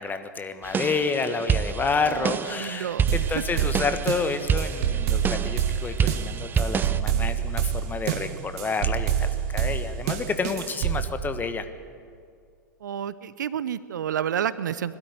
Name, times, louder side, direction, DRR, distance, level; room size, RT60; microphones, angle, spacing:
voice 1, 0.0-11.6, left 4 dB, 15° left, 9 dB, 1.4 m, -29 dB
sound 1, 0.6-7.0, right 7 dB, 20° right, 0.6 m, -28 dB
voice 2, 2.0-3.1 3.4-3.7 12.8-15.0, right 9 dB, 70° right, 17 dB, 0.7 m, -30 dB
sound 2, 3.1-11.1, right 9 dB, 50° right, 1.5 m, -27 dB
21.5 x 13.0 x 9.5 m, 2.2 s
figure-of-eight pair, 95°, 10 cm